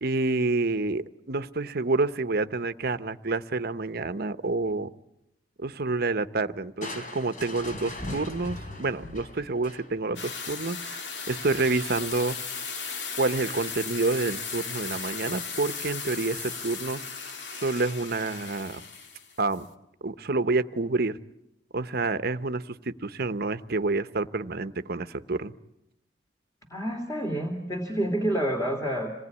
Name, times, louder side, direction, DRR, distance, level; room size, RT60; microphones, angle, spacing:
voice 1, 0.0-4.9 5.6-12.4 13.2-17.0 17.5-18.8 19.4-19.7 20.0-21.2 21.7-25.5, right 3 dB, 60° right, 11 dB, 1.0 m, -28 dB
Crushing, 6.8-10.2, left 1 dB, 45° left, 3.8 m, -39 dB
sound 1, 10.2-19.6, left 5 dB, 70° left, 2.2 m, -36 dB
voice 2, 26.7-29.1, right 1 dB, 20° left, 3 dB, 2.8 m, -28 dB
27.0 x 20.0 x 9.8 m, 0.86 s
head